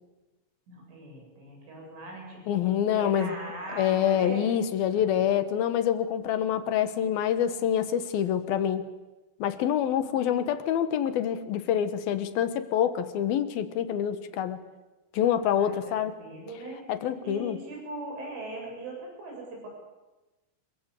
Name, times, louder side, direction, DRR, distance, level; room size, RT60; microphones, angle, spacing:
voice 1, 0.7-2.7 2.9-4.5 4.9-5.4 10.0-10.2 15.5-16.9 17.2-19.7, right 2 dB, 80° right, 0 dB, 10.5 m, -40 dB
voice 2, 2.5-3.3 3.7-8.9 9.4-14.6 15.1-16.1 16.9-17.6, left 9 dB, 65° left, 11 dB, 2.7 m, -26 dB
27.0 x 23.0 x 8.4 m, 1.1 s
omnidirectional pair, 5.5 m